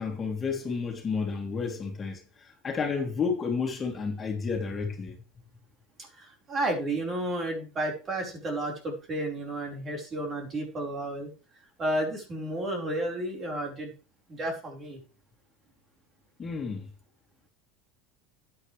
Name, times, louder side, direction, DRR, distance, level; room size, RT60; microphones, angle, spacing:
voice 1, 0.0-5.2 16.4-16.9, left 5 dB, 25° left, 2.9 m, -31 dB
voice 2, 6.1-11.3 11.8-13.9 14.3-15.0, right 1 dB, 30° right, 4.7 m, -32 dB
12.0 x 9.3 x 3.3 m
supercardioid pair, 115°, 0 cm